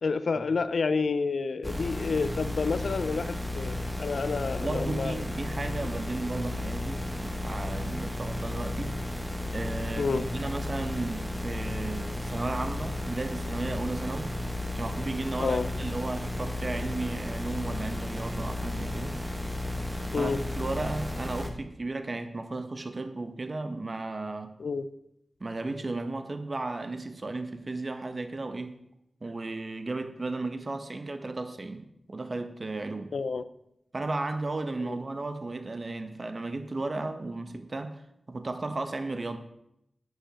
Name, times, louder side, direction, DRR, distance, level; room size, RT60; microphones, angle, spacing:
voice 1, 0.0-5.2 10.0-10.3 15.4-15.7 20.1-20.4 24.6-24.9 33.1-33.4 34.8-35.0, left 4 dB, 85° left, 14 dB, 0.6 m, -29 dB
sound 1, 1.6-21.5, left 1 dB, 5° right, 1.9 m, -33 dB
voice 2, 4.6-9.0 9.5-14.4 14.7-19.2 20.2-24.5 25.4-28.8 29.2-33.1 33.9-38.0 38.3-39.4, right 2 dB, 50° right, 9 dB, 1.3 m, -34 dB
10.5 x 9.1 x 6.3 m, 0.79 s
wide cardioid pair, 55°, 0 cm